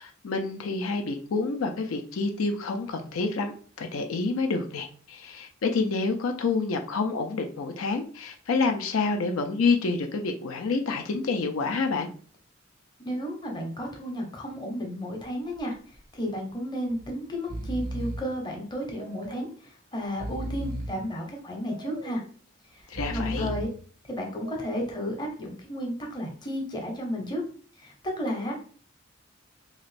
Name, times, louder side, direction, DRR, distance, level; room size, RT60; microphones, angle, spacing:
voice 1, 0.0-3.5 3.8-12.1 22.9-23.5, left 4 dB, 85° left, 5 dB, 0.5 m, -28 dB
voice 2, 13.0-15.7 16.1-22.2 22.7-23.7 24.1-27.4 27.8-28.5, equal, 20° left, 1 dB, 0.7 m, -33 dB
Breathing, 15.3-15.6 15.9-16.0 16.9-17.1 17.3-18.4 18.9-19.6 20.0-21.1 21.6-22.3 22.8-23.8 24.4-25.0, right 1 dB, 45° right, 0.4 m, -36 dB
3.0 x 2.5 x 3.2 m, 0.43 s
head